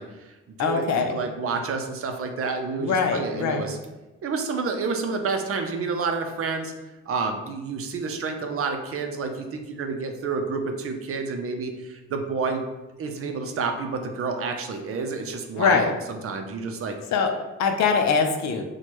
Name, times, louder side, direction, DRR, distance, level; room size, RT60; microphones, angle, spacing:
voice 1, 0.0-3.8 4.2-6.7 7.1-12.6 13.0-17.0, right 4 dB, 50° right, 5 dB, 0.5 m, -29 dB
voice 2, 0.6-1.1 2.8-3.6 15.6-15.9 17.1-17.3 17.6-18.6, left 5 dB, 65° left, 5 dB, 0.5 m, -22 dB
4.3 x 2.2 x 3.0 m, 1.1 s
cardioid pair, 90°, 30 cm